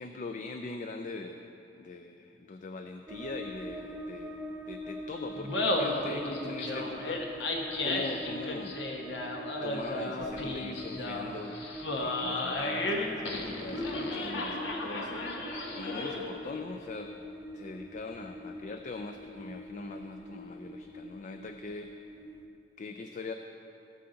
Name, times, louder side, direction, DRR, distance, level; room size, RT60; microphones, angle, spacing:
voice 1, 0.0-4.4 4.7-7.3 7.8-8.8 9.6-11.6 11.9-15.3 15.7-17.1 17.5-21.9 22.8-23.3, left 3 dB, 45° left, 6 dB, 0.4 m, -41 dB
sound 1, 3.1-22.5, equal, 15° right, 0.6 m, -44 dB
Laughter, 5.3-16.4, left 2 dB, 90° left, 1.2 m, -33 dB
17.0 x 6.9 x 3.9 m, 2.9 s
head